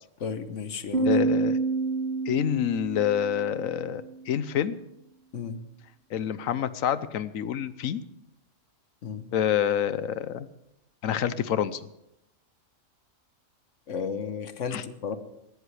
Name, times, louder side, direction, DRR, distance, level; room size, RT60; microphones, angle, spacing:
voice 1, 0.2-1.2 5.3-5.6 9.0-9.3 13.9-15.2, left 6 dB, 65° left, 10 dB, 1.3 m, -33 dB
Piano, 0.9-4.4, right 3 dB, 50° right, 5.0 m, -28 dB
voice 2, 1.0-1.6 2.2-4.8 6.1-8.0 9.3-10.5 11.0-11.8 14.7-14.8, left 9 dB, 90° left, 14 dB, 1.2 m, -27 dB
19.5 x 16.5 x 3.3 m, 0.84 s
omnidirectional pair, 1.4 m